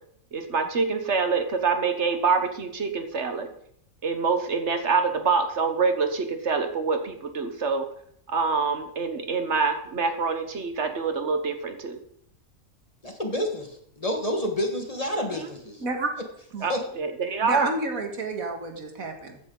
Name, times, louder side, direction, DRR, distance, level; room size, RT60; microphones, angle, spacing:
voice 1, 0.3-3.5 4.0-7.9 8.3-12.0 16.6-17.7, right 4 dB, 55° right, 8 dB, 1.4 m, -25 dB
voice 2, 13.0-15.8 16.7-16.8, left 1 dB, 25° left, 4 dB, 1.5 m, -29 dB
voice 3, 15.8-16.1 16.5-16.7 17.4-19.4, right 3 dB, 85° right, 4 dB, 2.1 m, -30 dB
14.5 x 9.6 x 3.9 m, 0.68 s
omnidirectional pair, 1.4 m